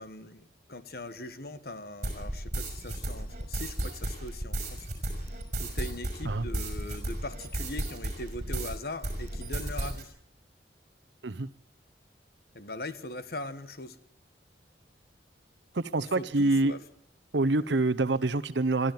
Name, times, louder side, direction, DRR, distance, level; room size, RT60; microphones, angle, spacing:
voice 1, 0.0-4.9 5.6-10.1 12.5-14.0 16.0-16.8, left 2 dB, 55° left, 13 dB, 1.5 m, -41 dB
sound 1, 2.0-8.8 9.0-10.0, right 1 dB, 45° right, 6.1 m, -34 dB
voice 2, 15.7-16.8 17.3-18.9, right 2 dB, 85° right, 13 dB, 0.9 m, -26 dB
23.0 x 13.5 x 9.3 m, 0.66 s
head